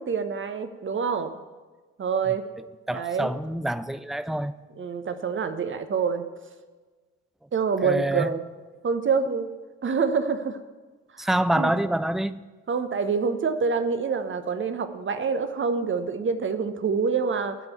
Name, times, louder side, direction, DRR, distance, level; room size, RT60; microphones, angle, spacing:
voice 1, 0.0-1.3 2.0-2.4 2.9-3.3 4.8-6.3 7.5-8.4 8.8-9.5 9.8-10.6 11.1-11.3 11.6-11.7 12.7-17.6, right 5 dB, 30° right, 1.1 m, -26 dB
voice 2, 2.9-4.5 7.8-8.3 11.2-12.4, right 1 dB, ahead, 0.3 m, -26 dB
13.5 x 5.3 x 8.3 m
figure-of-eight pair, 45°, 38 cm